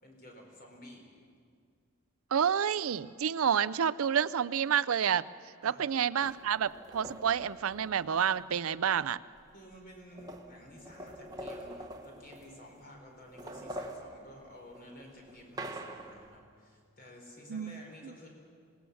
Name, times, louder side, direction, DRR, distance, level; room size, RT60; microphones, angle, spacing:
voice 1, 0.0-1.1 5.6-5.8 9.5-18.3, equal, 45° left, 1 dB, 4.8 m, -52 dB
voice 2, 2.3-5.2 5.6-9.2 17.5-18.1, right 8 dB, 75° right, 15 dB, 0.5 m, -29 dB
sound 1, 6.2-8.4 9.4-9.5 9.7-12.8 13.2-16.3, right 1 dB, 15° right, 1.2 m, -45 dB
26.5 x 18.5 x 7.1 m, 2.1 s
head